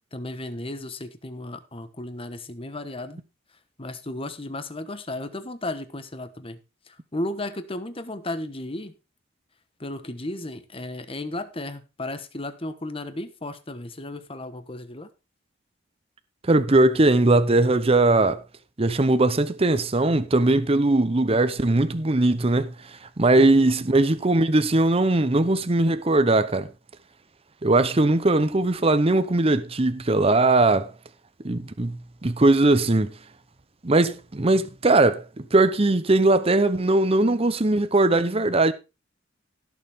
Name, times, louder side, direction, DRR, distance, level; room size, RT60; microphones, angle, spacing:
voice 1, 0.1-3.2 3.8-6.6 6.9-8.9 9.8-15.1 23.3-23.7, left 1 dB, 30° left, 1.2 m, -34 dB
voice 2, 16.4-18.4 18.8-26.7 27.6-30.9 31.4-33.1 33.8-38.7, right 2 dB, 30° right, 0.8 m, -20 dB
17.0 x 7.1 x 3.6 m
head